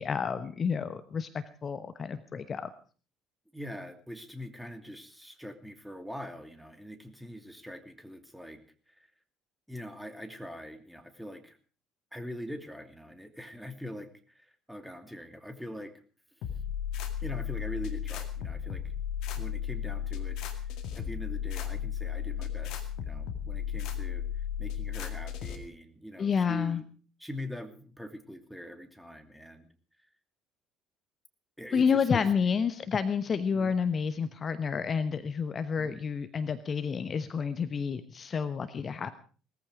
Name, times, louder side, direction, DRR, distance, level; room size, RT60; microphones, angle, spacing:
voice 1, 0.0-2.7 26.2-26.8 31.7-39.1, left 6 dB, 35° left, 12 dB, 1.1 m, -29 dB
voice 2, 3.5-8.6 8.9-9.1 9.7-11.6 12.1-15.9 17.2-18.8 19.3-20.6 20.9-26.8 27.2-29.7 31.6-32.5 33.5-33.7 35.8-36.0, equal, ahead, 7 dB, 2.7 m, -43 dB
sound 1, 16.4-25.6, left 9 dB, 55° left, 2.1 m, -34 dB
19.0 x 14.5 x 4.9 m, 0.39 s
figure-of-eight pair, 55°, 0 cm